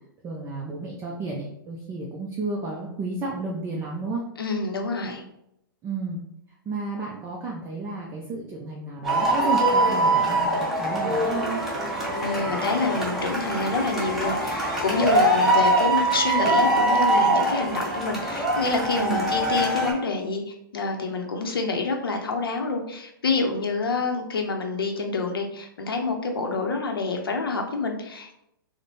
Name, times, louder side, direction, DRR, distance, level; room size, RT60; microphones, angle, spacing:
voice 1, 0.2-4.2 5.8-6.2 6.7-11.6 19.0-19.3, right 3 dB, 20° right, -2 dB, 0.5 m, -32 dB
voice 2, 4.4-5.2 12.1-28.3, left 3 dB, 80° left, 3 dB, 0.6 m, -27 dB
sound 1, 9.0-19.9, right 1 dB, ahead, 0.9 m, -23 dB
4.2 x 2.1 x 3.1 m, 0.80 s
hypercardioid pair, 120°, 12 cm